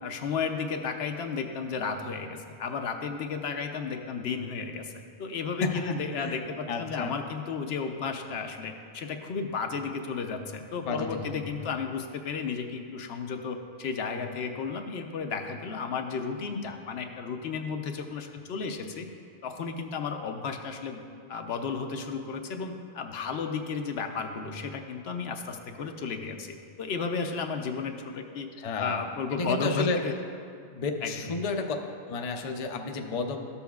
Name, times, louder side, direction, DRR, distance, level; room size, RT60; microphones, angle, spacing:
voice 1, 0.0-4.9 5.2-19.1 19.4-21.0 21.3-28.5 28.8-30.1 31.0-31.3, left 5 dB, 70° left, 5 dB, 0.8 m, -33 dB
voice 2, 5.6-6.3 6.7-7.1 10.9-11.5 28.6-29.0 29.4-30.0 30.7-31.8 32.0-33.5, left 3 dB, 45° left, 3 dB, 0.5 m, -31 dB
13.0 x 7.0 x 2.3 m, 2.2 s
omnidirectional pair, 1.1 m